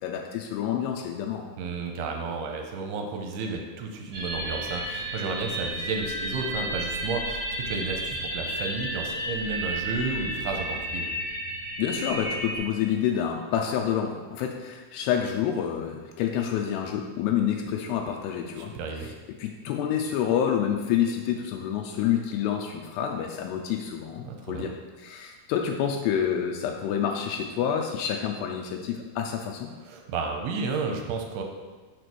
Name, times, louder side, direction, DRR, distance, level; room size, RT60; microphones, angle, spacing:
voice 1, 0.0-1.5 11.8-18.7 19.0-19.1 19.4-24.7 25.0-29.7, left 9 dB, 85° left, 2 dB, 2.6 m, -28 dB
voice 2, 1.6-11.1 18.6-19.1 24.2-24.7 29.8-31.4, right 4 dB, 80° right, 3 dB, 2.6 m, -32 dB
sound 1, 4.1-12.6, right 1 dB, 45° right, 2.7 m, -32 dB
6.8 x 4.2 x 6.1 m, 1.4 s
omnidirectional pair, 4.8 m